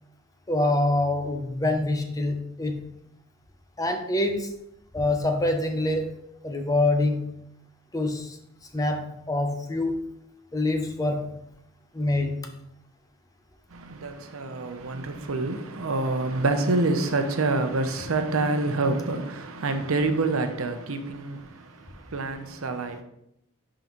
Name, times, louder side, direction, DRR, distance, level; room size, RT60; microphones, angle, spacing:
voice 1, 0.5-2.8 3.8-4.5 4.9-6.2 6.4-7.3 7.9-8.4 8.7-10.1 10.5-11.3 11.9-12.5, left 2 dB, 15° left, 0.6 m, -25 dB
voice 2, 13.7-23.0, right 3 dB, 80° right, 0.7 m, -27 dB
10.5 x 3.8 x 3.0 m
head